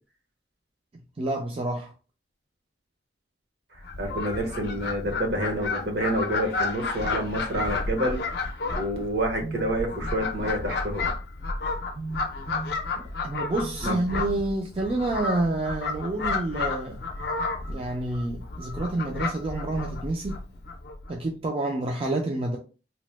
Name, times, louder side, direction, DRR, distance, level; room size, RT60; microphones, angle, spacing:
voice 1, 1.2-1.9 9.4-9.6 12.0-12.8 13.2-17.0 17.7-20.4 21.1-22.6, right 2 dB, 30° right, 0.4 m, -29 dB
voice 2, 3.7-11.1 13.8-14.0, right 1 dB, 65° right, 0.9 m, -28 dB
Fowl, 3.8-21.1, left 3 dB, 60° left, 0.5 m, -32 dB
2.8 x 2.0 x 3.2 m
head